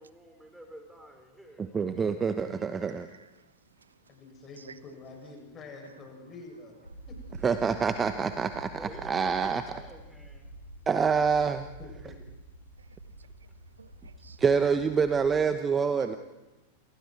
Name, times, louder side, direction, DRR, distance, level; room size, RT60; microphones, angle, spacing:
voice 1, 0.0-1.8 4.0-4.1 8.7-10.5 12.9-13.0, right 1 dB, ahead, 5.4 m, -50 dB
voice 2, 1.6-3.1 7.4-8.7 9.0-9.6 10.9-11.7 14.4-16.2, right 6 dB, 20° right, 1.1 m, -26 dB
voice 3, 2.8-4.0 4.6-4.8 5.8-5.9 12.8-13.3 13.8-14.4 16.0-16.1, right 5 dB, 75° right, 0.9 m, -54 dB
voice 4, 4.1-6.8 7.1-7.2 11.8-12.2, left 3 dB, 25° left, 8.0 m, -46 dB
sound 1, 6.8-15.4, right 1 dB, 90° right, 2.2 m, -47 dB
29.5 x 27.5 x 4.8 m
figure-of-eight pair, 90°, 0 cm